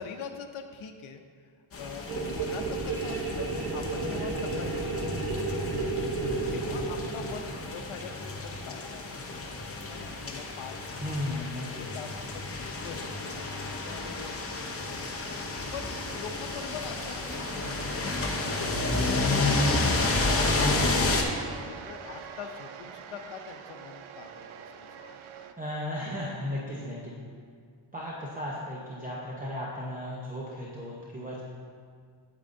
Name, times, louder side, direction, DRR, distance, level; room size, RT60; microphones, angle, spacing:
voice 1, 0.0-1.5 1.8-5.3 5.6-5.7 6.5-9.5 9.8-14.6 15.7-17.7 18.4-19.7 20.1-24.6 25.1-25.3, left 6 dB, 80° left, 5 dB, 0.7 m, -43 dB
sound 1, 1.7-21.2, left 3 dB, 30° left, 0.6 m, -31 dB
sound 2, 2.1-7.8, right 3 dB, 50° right, 0.9 m, -32 dB
sound 3, 7.8-25.5, right 7 dB, 80° right, 0.6 m, -45 dB
voice 2, 11.0-11.8 25.6-27.1 27.9-31.4, left 1 dB, 15° right, -5 dB, 0.7 m, -35 dB
8.6 x 8.4 x 2.6 m, 2.1 s
wide cardioid pair, 170°, 48 cm